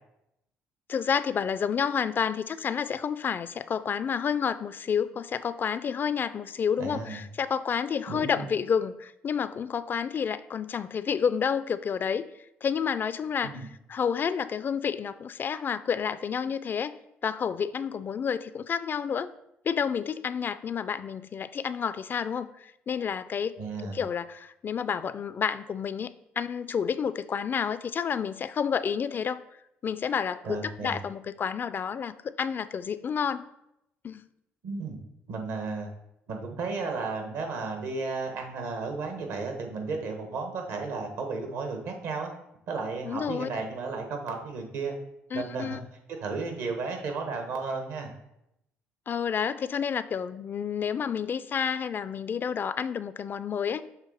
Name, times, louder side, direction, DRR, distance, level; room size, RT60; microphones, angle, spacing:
voice 1, 0.9-12.3 12.6-16.9 17.2-19.3 19.6-29.4 29.8-33.4 34.0-34.2 43.0-43.5 45.3-45.8 49.1-53.8, left 7 dB, 40° left, 14 dB, 0.3 m, -30 dB
voice 2, 6.8-7.2 8.1-8.4 13.4-13.7 23.6-24.0 30.4-31.0 34.6-35.0 35.3-35.9 36.3-42.3 42.7-44.9 45.3-45.8 46.2-48.1, right 4 dB, 75° right, 4 dB, 1.3 m, -33 dB
6.5 x 3.2 x 5.0 m, 0.82 s
supercardioid pair, 75°, 5 cm